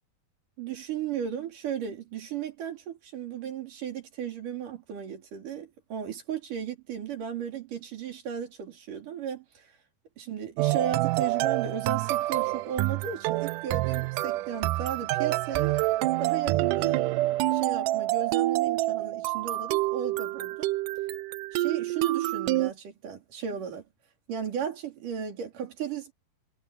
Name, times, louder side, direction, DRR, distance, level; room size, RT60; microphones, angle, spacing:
voice 1, 0.6-9.7 10.2-15.8 16.2-17.1 17.5-20.8 21.5-23.9 24.3-26.1, right 8 dB, 60° right, 4.8 m, -35 dB
sound 1, 10.6-22.7, right 17 dB, 90° right, 1.8 m, -27 dB
omnidirectional pair, 4.4 m